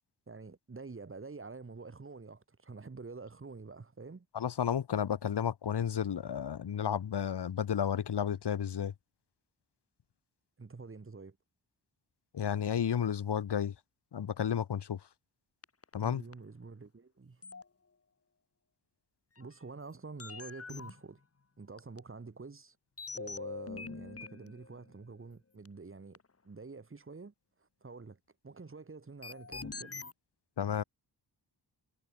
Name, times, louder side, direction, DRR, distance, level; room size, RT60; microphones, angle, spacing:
voice 1, 0.3-4.3 10.6-11.4 16.0-17.4 19.4-21.2 21.6-22.8 23.1-26.2 26.4-27.3 27.6-30.0, right 4 dB, 30° right, 7.9 m, -47 dB
voice 2, 4.3-8.9 12.3-13.7 14.1-15.0 15.9-16.2 30.6-30.8, left 8 dB, 75° left, 3.9 m, -32 dB
sound 1, 15.6-16.0 16.3-16.4 17.4-17.6 19.4-19.5 20.2-21.0 21.8-22.0 23.0-24.9 25.6-25.7 26.1-26.2 29.2-30.1, left 4 dB, 35° left, 7.2 m, -43 dB
wide cardioid pair, 140°, 40 cm